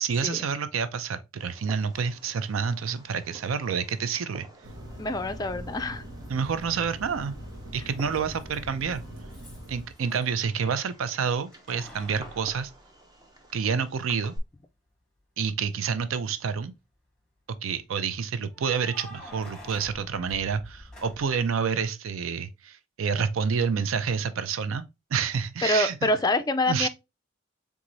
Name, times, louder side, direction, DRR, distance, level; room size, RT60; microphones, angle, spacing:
voice 1, 0.0-4.5 6.3-7.3 7.7-9.0 9.7-12.7 13.5-14.3 15.4-16.7 17.6-24.8 25.1-26.1 26.7-26.9, right 6 dB, 85° right, 0.5 m, -28 dB
Fireworks, 1.4-14.4, right 1 dB, 20° right, 0.8 m, -51 dB
Keys jangling, 1.9-2.0 3.9-4.0 6.2-6.8 7.1-10.3 11.5-13.6 14.1-14.2 16.0-16.6 18.5-21.5, left 1 dB, 5° left, 1.7 m, -48 dB
sound 1, 4.6-9.9, equal, 70° right, 1.4 m, -41 dB
voice 2, 5.0-6.0 25.6-26.9, left 2 dB, 20° left, 0.4 m, -26 dB
3.9 x 3.6 x 3.1 m
head